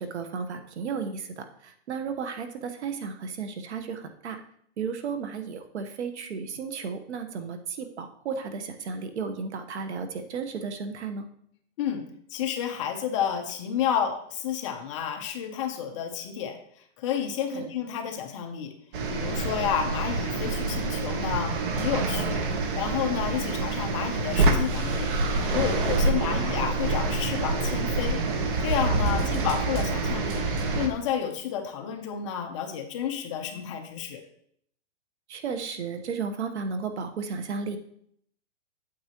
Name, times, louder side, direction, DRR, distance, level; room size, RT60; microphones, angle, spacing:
voice 1, 0.0-4.4 4.8-11.3 17.5-17.7 26.1-26.5 29.2-29.5 35.3-37.8, right 5 dB, 65° right, 8 dB, 1.2 m, -34 dB
voice 2, 11.8-16.6 17.0-18.7 19.1-22.4 22.7-25.1 25.4-28.3 28.6-30.5 30.7-34.2, left 8 dB, 25° left, 4 dB, 0.7 m, -30 dB
sound 1, 18.9-30.9, right 2 dB, 45° right, 1.2 m, -27 dB
8.8 x 7.8 x 3.0 m, 0.66 s
hypercardioid pair, 160°, 36 cm